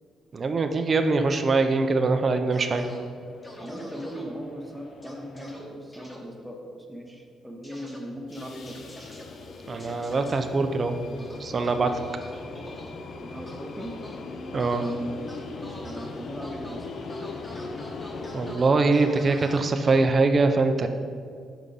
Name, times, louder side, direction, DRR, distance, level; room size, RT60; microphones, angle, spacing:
voice 1, 0.3-2.9 9.7-11.0 11.4-11.9 14.5-14.8 18.3-20.9, right 3 dB, 40° right, 7 dB, 0.4 m, -23 dB
sound 1, 2.5-3.0 3.4-4.2 5.0-5.6 5.9-6.2 7.6-8.0 8.3-9.2 9.8-10.4 11.2-12.9 13.5-14.1 14.6-14.9 15.3-16.1 16.4-16.8 17.1-20.0, equal, 15° left, 1.1 m, -45 dB
sound 2, 2.7-5.8 8.2-18.6, left 3 dB, 55° left, 0.5 m, -40 dB
voice 2, 3.6-8.8 12.0-12.1 13.1-14.0 14.8-16.9, equal, 10° right, 1 dB, 0.8 m, -39 dB
5.3 x 4.8 x 3.9 m, 2.2 s
cardioid pair, 90°, 0 cm